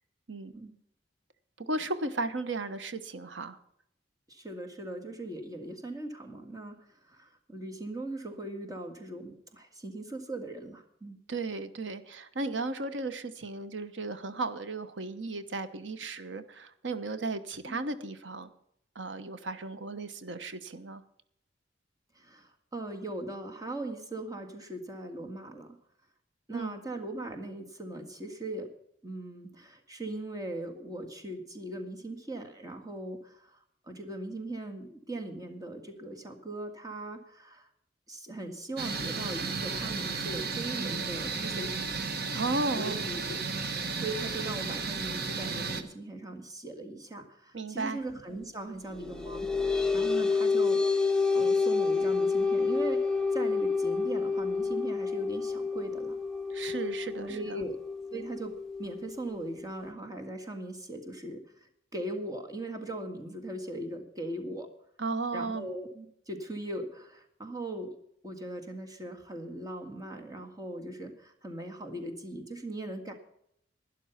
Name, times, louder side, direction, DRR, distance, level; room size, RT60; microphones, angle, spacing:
voice 1, 1.6-3.6 11.3-18.5 18.9-21.0 26.5-26.8 42.3-43.0 47.5-48.0 56.5-57.6 65.0-65.7, right 3 dB, 90° right, 12 dB, 1.1 m, -35 dB
voice 2, 4.3-6.8 7.1-11.2 17.7-17.8 22.2-25.8 26.5-28.7 29.0-33.6 33.8-37.7 38.1-42.0 42.8-43.4 43.9-49.5 49.9-51.0 51.3-56.2 57.2-57.8 58.1-61.4 61.9-64.7 65.3-68.0 68.2-73.1, right 1 dB, 20° right, 4 dB, 1.9 m, -39 dB
sound 1, 38.8-45.8, right 4 dB, 60° right, 1.2 m, -34 dB
sound 2, 48.9-59.9, left 4 dB, 5° left, 0.8 m, -29 dB
12.0 x 11.0 x 5.8 m, 0.73 s
head